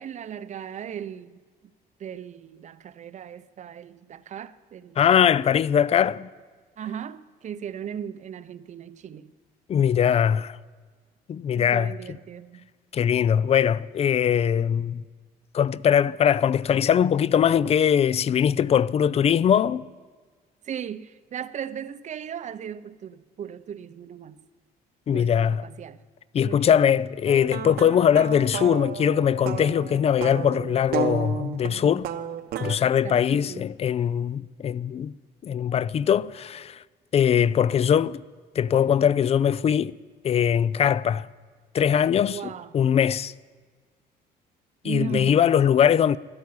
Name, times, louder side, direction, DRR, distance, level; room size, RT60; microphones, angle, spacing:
voice 1, 0.0-1.4 2.0-5.0 6.8-9.3 11.5-12.7 20.6-24.4 25.1-26.0 26.4-27.0 33.0-33.7 42.3-42.7 44.8-45.5, right 9 dB, 45° right, 0.6 m, -37 dB
voice 2, 5.0-6.3 9.7-10.6 11.3-11.9 12.9-15.0 15.5-19.8 25.1-25.6 26.3-32.1 32.6-35.1 35.4-36.8 37.1-38.2 38.6-39.9 40.2-41.3 41.7-43.3 44.8-46.2, left 8 dB, 35° left, 0.4 m, -21 dB
sound 1, 27.3-32.8, right 9 dB, 65° right, 1.0 m, -32 dB
13.0 x 10.5 x 9.6 m
cardioid pair, 110°, 17 cm